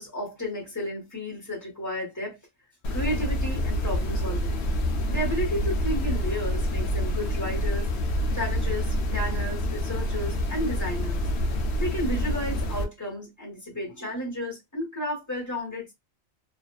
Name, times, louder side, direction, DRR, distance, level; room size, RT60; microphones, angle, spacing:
voice 1, 0.0-2.4 2.9-4.6 5.1-7.9 8.3-11.2 11.8-15.9, equal, 15° left, 1.0 m, -32 dB
sound 1, 2.8-12.9, equal, 65° left, 0.8 m, -27 dB
2.5 x 2.4 x 2.2 m
omnidirectional pair, 1.4 m